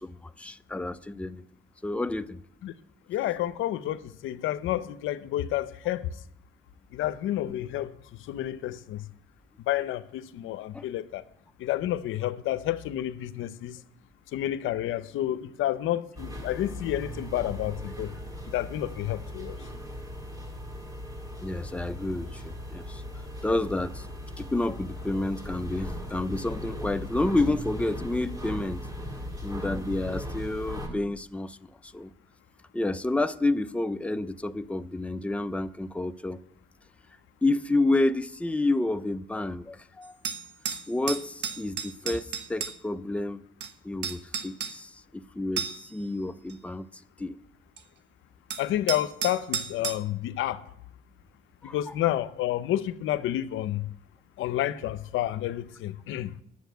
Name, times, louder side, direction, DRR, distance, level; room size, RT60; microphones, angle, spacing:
voice 1, 0.0-1.4 1.8-2.4 10.7-10.9 21.4-23.0 23.4-24.1 24.4-28.8 29.4-31.6 31.8-32.1 32.7-36.4 37.4-40.1 40.9-43.4 43.8-46.9 47.2-47.4 51.6-51.9, left 2 dB, 5° left, 0.6 m, -29 dB
voice 2, 3.1-6.1 6.9-9.0 9.7-11.2 11.6-13.8 14.3-18.1 18.5-19.6 48.6-50.6 51.6-53.9 54.4-56.3, left 13 dB, 85° left, 0.7 m, -30 dB
sound 1, 16.1-30.9, equal, 20° right, 3.6 m, -38 dB
sound 2, 40.0-42.7 43.6-43.7 44.0-44.7 45.6-46.0 46.5-46.6 47.8-47.9 48.5-50.0, right 7 dB, 65° right, 1.4 m, -33 dB
11.5 x 7.3 x 9.2 m
cardioid pair, 90°, 20 cm